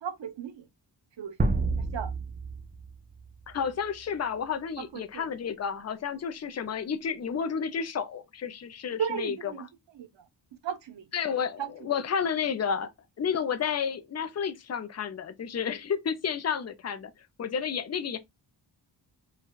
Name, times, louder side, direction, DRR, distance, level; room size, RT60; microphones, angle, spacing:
voice 1, 0.0-0.7 1.2-1.3 1.8-2.1 4.8-5.4 9.0-10.3 10.6-11.1 11.6-12.0, right 7 dB, 75° right, 0.8 m, -36 dB
sound 1, 1.4-3.8, right 3 dB, 20° right, 0.4 m, -30 dB
voice 2, 3.5-9.5 11.1-12.9 13.2-17.1 17.4-18.2, left 7 dB, 40° left, 0.4 m, -31 dB
4.6 x 2.2 x 2.3 m
wide cardioid pair, 110°, 44 cm